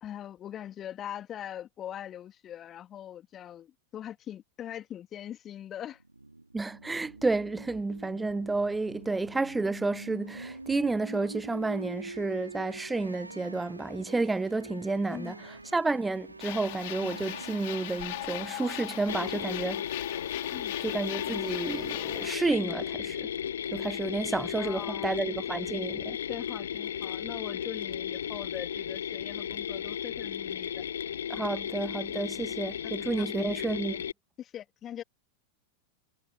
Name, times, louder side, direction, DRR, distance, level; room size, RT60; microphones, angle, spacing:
voice 1, 0.0-6.0 15.1-15.3 20.5-20.8 24.6-25.2 26.3-30.8 32.1-32.3 32.8-33.4 34.4-35.0, left 10 dB, 30° left, 3.0 m, -42 dB
sound 1, 5.9-19.6, right 2 dB, 85° right, 5.1 m, -45 dB
voice 2, 6.5-19.8 20.8-23.3 23.7-26.2 31.3-34.0, right 3 dB, 10° right, 0.3 m, -31 dB
sound 2, 16.4-22.3, left 21 dB, 50° left, 4.9 m, -39 dB
Mechanisms, 19.1-34.1, left 9 dB, 65° left, 1.9 m, -35 dB
figure-of-eight pair, 90°, 0 cm